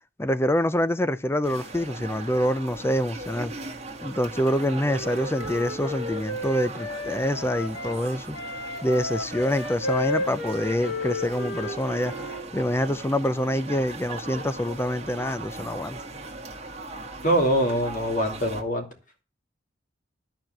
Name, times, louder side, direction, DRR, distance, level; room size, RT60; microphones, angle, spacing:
voice 1, 0.2-3.5 4.0-8.4 8.8-12.1 12.5-16.0, left 1 dB, 15° left, 0.6 m, -26 dB
sound 1, 1.4-18.6, right 2 dB, 35° right, 1.6 m, -39 dB
Wind instrument woodwind instrument, 4.4-8.0 8.3-12.5, left 1 dB, 75° left, 1.8 m, -33 dB
voice 2, 17.2-18.9, right 1 dB, 45° left, 2.7 m, -23 dB
12.0 x 4.5 x 7.8 m
head